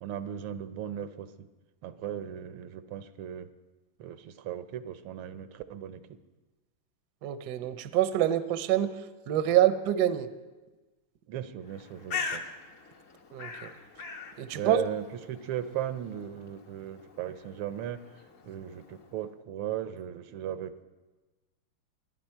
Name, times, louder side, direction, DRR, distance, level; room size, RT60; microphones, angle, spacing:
voice 1, 0.0-1.3 1.8-3.5 4.0-6.0 11.3-12.4 14.5-18.0 18.4-20.8, right 10 dB, 80° right, 11 dB, 1.6 m, -37 dB
voice 2, 7.2-8.9 9.3-10.3 13.3-13.5 14.4-14.8, right 12 dB, 65° right, 11 dB, 1.1 m, -26 dB
Bird, 11.6-19.2, left 5 dB, 50° left, 1.1 m, -42 dB
23.0 x 9.2 x 4.5 m, 1.2 s
omnidirectional pair, 2.3 m